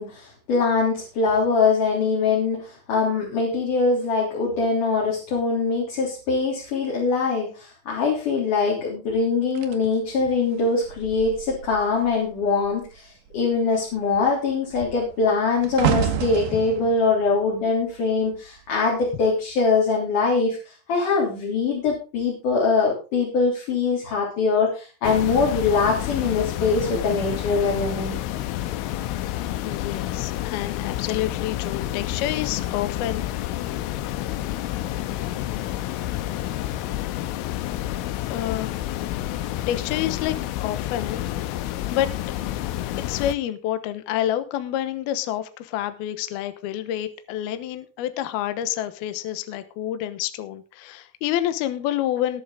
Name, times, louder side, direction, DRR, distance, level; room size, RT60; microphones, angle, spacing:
voice 1, 0.0-28.2, left 4 dB, 45° left, -3 dB, 4.5 m, -23 dB
sound 1, 9.6-12.3 12.6-12.9 13.3-18.6 19.3-19.6, right 8 dB, 65° right, 2.2 m, -31 dB
sound 2, 25.0-43.4, left 13 dB, 90° left, 3.3 m, -29 dB
voice 2, 29.6-33.2 38.3-39.1 39.7-40.4 40.6-41.3 41.6-42.1 43.0-52.4, left 12 dB, 70° left, 11 dB, 2.5 m, -28 dB
20.5 x 7.2 x 3.8 m, 0.34 s
omnidirectional pair, 5.6 m